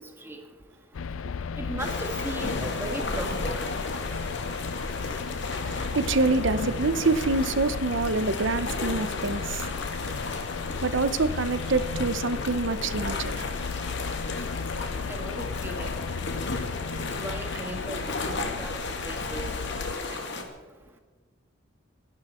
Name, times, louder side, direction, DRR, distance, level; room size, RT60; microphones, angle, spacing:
sound 1, 0.9-20.0, left 5 dB, 85° left, 0.5 m, -35 dB
voice 1, 1.6-3.6 15.1-16.0 17.2-19.4 20.1-20.2, right 1 dB, 10° right, 1.8 m, -37 dB
sound 2, 1.8-20.4, left 3 dB, 60° left, 2.1 m, -34 dB
voice 2, 5.6-9.6 10.8-13.4, right 3 dB, 65° right, 0.9 m, -26 dB
28.0 x 11.5 x 4.4 m
head